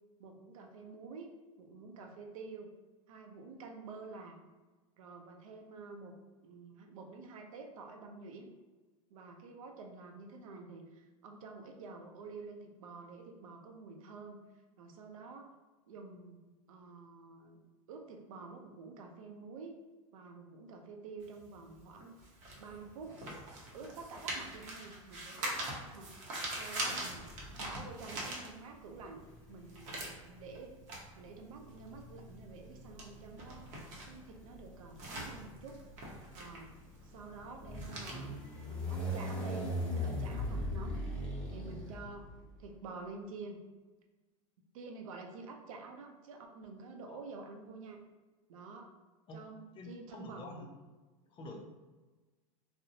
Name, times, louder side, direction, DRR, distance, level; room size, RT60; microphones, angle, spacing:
voice 1, 0.2-1.3 1.6-2.7 3.1-4.4 5.0-6.1 6.4-8.5 9.1-14.4 14.8-15.5 15.9-17.6 17.9-19.8 20.1-22.2 22.6-23.2 23.7-26.1 26.5-27.3 27.6-30.7 31.2-33.7 34.1-35.8 36.3-36.7 37.0-38.4 38.7-41.0 41.5-42.3 42.6-43.6 44.7-48.0 48.5-48.9 49.3-50.7, right 4 dB, 80° right, 3 dB, 0.5 m, -49 dB
sound 1, 21.2-29.0 29.3-39.4, right 1 dB, 45° right, 0.8 m, -43 dB
sound 2, 27.2-27.9 28.9-42.6, equal, 5° left, 0.8 m, -41 dB
voice 2, 49.7-50.7 51.3-51.6, left 2 dB, 30° left, 2 dB, 0.5 m, -48 dB
2.6 x 2.0 x 2.7 m, 1.2 s
hypercardioid pair, 105°, 17 cm